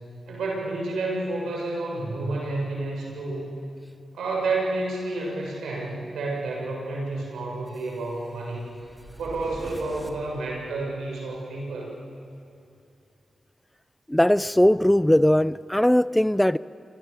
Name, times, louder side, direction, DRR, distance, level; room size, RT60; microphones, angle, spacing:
voice 1, 0.3-3.5 4.1-8.8 9.2-11.9, right 2 dB, 85° right, 7.0 m, -30 dB
sound 1, 7.7-11.1, right 1 dB, 10° right, 3.5 m, -46 dB
voice 2, 14.1-16.6, left 1 dB, 10° left, 0.5 m, -19 dB
29.0 x 26.5 x 7.1 m
supercardioid pair, 45°, 0 cm